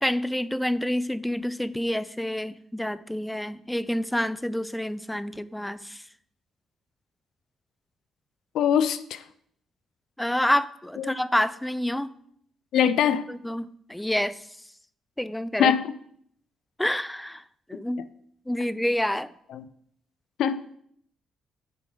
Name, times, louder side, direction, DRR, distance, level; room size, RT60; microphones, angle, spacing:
voice 1, 0.0-6.0 10.2-12.1 13.3-13.6 13.9-14.4 15.2-15.7 16.8-17.4 17.7-18.0 18.5-19.3, left 1 dB, 5° left, 16 dB, 0.3 m, -28 dB
voice 2, 8.5-9.2 11.0-11.1 12.7-13.3 15.6-15.9 19.5-19.6 20.4-20.6, left 8 dB, 80° left, 14 dB, 0.4 m, -22 dB
8.5 x 3.8 x 4.9 m, 0.67 s
cardioid pair, 90°, 0 cm